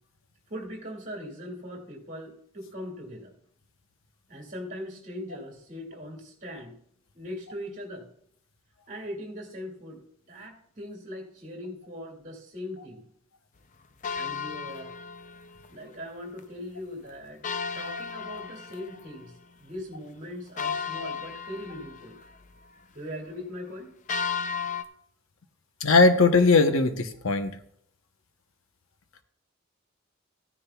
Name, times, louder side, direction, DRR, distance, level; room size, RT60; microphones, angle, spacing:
voice 1, 0.5-3.3 4.3-6.8 7.1-8.1 8.9-13.1 14.1-14.9 15.7-17.4 17.7-22.2 22.9-23.9, left 1 dB, 35° right, -1 dB, 2.3 m, -40 dB
sound 1, 14.0-15.7 16.1-16.2 16.4-16.5 17.4-19.4 19.8-19.9 20.6-22.3 24.1-24.8, left 6 dB, 35° left, 0.5 m, -34 dB
voice 2, 25.8-27.5, left 3 dB, 85° left, 7 dB, 1.0 m, -19 dB
15.0 x 10.0 x 2.3 m, 0.67 s
head